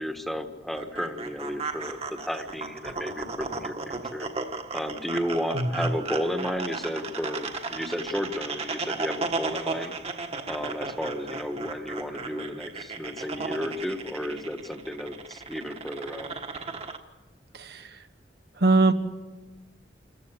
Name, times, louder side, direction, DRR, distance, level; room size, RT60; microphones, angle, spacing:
voice 1, 0.0-4.3 4.7-9.9 10.5-16.3, equal, ahead, 6 dB, 1.4 m, -33 dB
sound 1, 0.7-17.0, right 4 dB, 35° right, 1.5 m, -35 dB
voice 2, 5.5-5.9 17.5-18.0 18.6-18.9, right 2 dB, 65° right, 7 dB, 1.3 m, -22 dB
27.0 x 15.0 x 8.7 m, 1.3 s
head